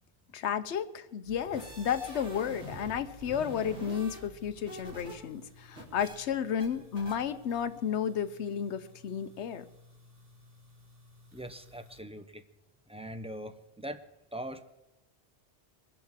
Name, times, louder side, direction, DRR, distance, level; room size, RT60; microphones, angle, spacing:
voice 1, 0.3-9.7, left 8 dB, 75° left, 11 dB, 1.1 m, -32 dB
sound 1, 1.2-12.0, left 1 dB, 55° right, 2.1 m, -56 dB
sound 2, 1.3-2.9 3.2-5.1 5.4-6.2 6.6-6.7 7.0-7.1, right 1 dB, 90° right, 4.0 m, -45 dB
voice 2, 11.3-12.4 12.9-14.0 14.3-14.6, right 1 dB, 5° right, 9 dB, 0.8 m, -41 dB
22.5 x 7.9 x 7.4 m, 0.94 s
omnidirectional pair, 1.2 m